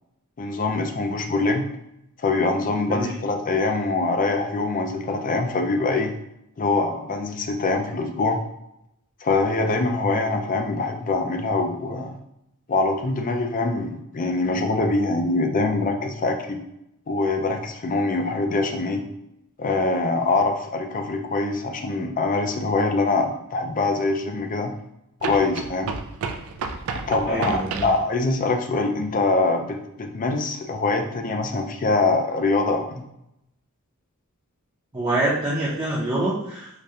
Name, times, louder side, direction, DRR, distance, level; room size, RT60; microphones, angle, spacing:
voice 1, 0.4-1.6 2.2-6.1 6.6-8.4 9.2-12.2 12.7-16.6 17.1-19.0 19.6-24.7 25.2-25.9 27.1-33.0, left 3 dB, 35° left, 4 dB, 0.4 m, -24 dB
sound 1, 22.8-22.9 25.2-28.0, right 4 dB, 65° right, 0.4 m, -31 dB
voice 2, 27.3-27.9 34.9-36.7, right 1 dB, 20° right, -8 dB, 0.6 m, -25 dB
4.8 x 2.2 x 2.7 m, 0.82 s
head